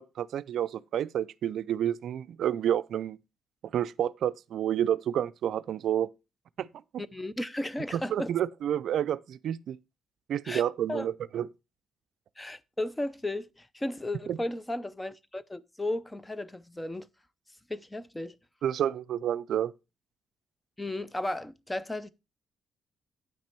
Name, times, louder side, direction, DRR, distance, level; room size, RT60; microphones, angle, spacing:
voice 1, 0.0-3.2 3.7-6.1 6.6-6.7 6.9-7.0 7.9-9.8 10.3-11.5 14.3-14.4 18.6-19.7, right 10 dB, 70° right, 0.4 m, -29 dB
voice 2, 7.1-8.3 10.4-11.1 12.4-17.1 17.7-18.4 20.8-22.1, left 1 dB, 10° left, 0.6 m, -35 dB
9.0 x 6.0 x 4.4 m
cardioid pair, 90°, 0 cm